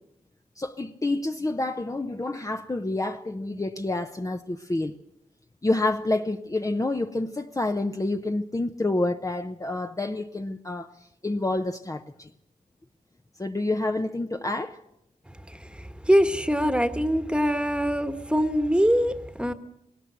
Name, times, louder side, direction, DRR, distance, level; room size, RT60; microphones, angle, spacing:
voice 1, 0.6-4.9 5.6-10.9 11.2-12.3 13.4-14.8, left 2 dB, 20° left, 0.8 m, -28 dB
voice 2, 16.1-19.5, equal, 5° right, 1.4 m, -23 dB
18.5 x 18.0 x 8.0 m
wide cardioid pair, 75°, 15 cm